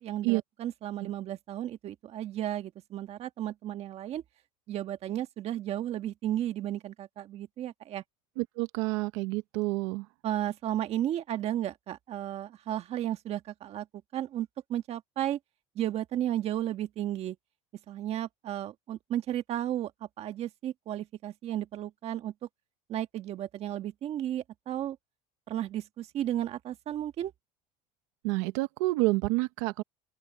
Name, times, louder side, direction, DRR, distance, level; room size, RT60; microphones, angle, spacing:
voice 1, 0.0-4.2 4.7-8.0 10.2-13.8 14.1-15.4 15.7-17.4 17.9-19.9 20.2-22.3 22.9-25.0 25.5-27.3, right 12 dB, 45° right, 1.5 m, -33 dB
voice 2, 8.4-10.1 28.2-29.8, right 23 dB, 85° right, 0.9 m, -29 dB
open air
cardioid pair, 135°, 15 cm